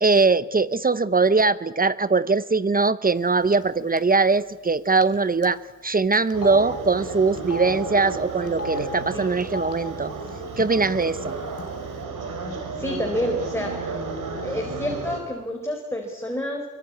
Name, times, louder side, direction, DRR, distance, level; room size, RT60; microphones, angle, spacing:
voice 1, 0.0-10.1 10.6-11.4, right 4 dB, 30° right, 15 dB, 0.9 m, -21 dB
Telephone, 3.5-3.7 4.0-4.1 5.0-5.1 5.4-5.5 6.3-6.6 7.4-7.7 8.5-8.8 9.4-9.7 10.5-10.7 10.9-11.6, left 3 dB, 50° left, 3.0 m, -34 dB
sound 1, 6.3-15.2, right 4 dB, 90° right, 5.3 m, -32 dB
voice 2, 12.8-14.0 14.4-16.6, equal, 10° left, 1 dB, 4.4 m, -29 dB
24.0 x 23.5 x 9.8 m, 1.2 s
cardioid pair, 90°, 31 cm